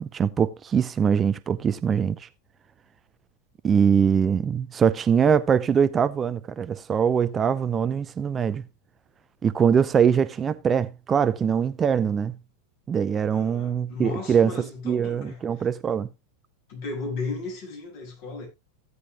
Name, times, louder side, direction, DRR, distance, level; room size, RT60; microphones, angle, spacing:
voice 1, 0.0-2.3 3.6-8.6 9.4-12.3 12.9-14.5 14.9-16.1, right 7 dB, 20° right, 0.6 m, -22 dB
voice 2, 13.3-15.7 16.7-18.5, left 4 dB, 50° left, 7.5 m, -35 dB
16.0 x 9.5 x 2.3 m
figure-of-eight pair, 90°, 0 cm